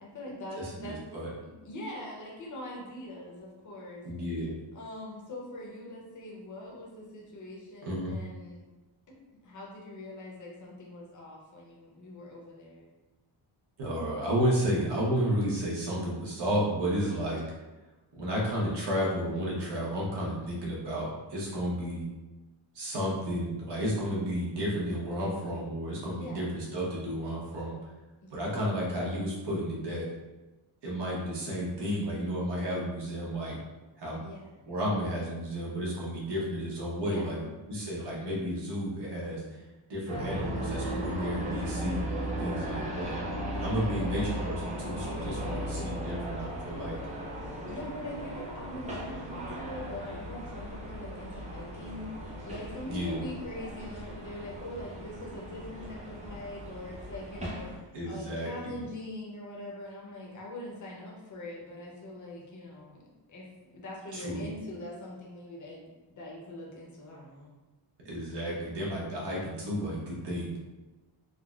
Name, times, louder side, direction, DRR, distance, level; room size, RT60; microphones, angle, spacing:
voice 1, 0.0-1.0 1.4-4.0 4.7-8.6 9.3-12.9 26.1-26.6 28.2-28.6 30.9-31.0 34.2-34.6 37.0-37.4 42.3-42.9 43.8-44.3 45.4-46.4 47.7-63.0 63.3-67.5, left 1 dB, 40° left, -3 dB, 0.7 m, -43 dB
voice 2, 0.6-1.3 4.0-4.5 7.8-8.1 13.8-17.4 18.1-22.1 22.7-27.7 28.3-30.1 30.8-33.6 34.0-34.2 34.7-37.4 37.7-39.6 39.9-43.1 43.6-47.0 52.9-53.2 57.9-58.8 64.1-64.5 68.0-70.5, equal, 55° right, -4 dB, 1.0 m, -32 dB
sound 1, 40.1-57.8, equal, 15° right, 0.4 m, -37 dB
3.6 x 2.0 x 2.3 m, 1.1 s
wide cardioid pair, 150°, 48 cm